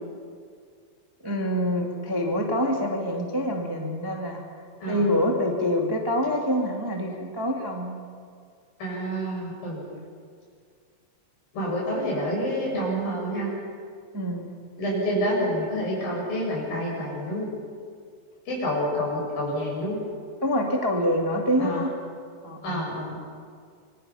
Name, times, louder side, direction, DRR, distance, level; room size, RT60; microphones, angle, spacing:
voice 1, 1.2-4.4 4.9-8.0 14.1-14.5 20.4-22.0 22.4-22.8, equal, 10° right, 0 dB, 1.3 m, -26 dB
voice 2, 8.8-9.9 11.5-13.5 14.8-17.5 18.5-20.0 21.6-21.8 22.6-23.2, equal, 70° left, -3 dB, 8.2 m, -28 dB
27.0 x 23.5 x 5.7 m, 2.1 s
omnidirectional pair, 4.2 m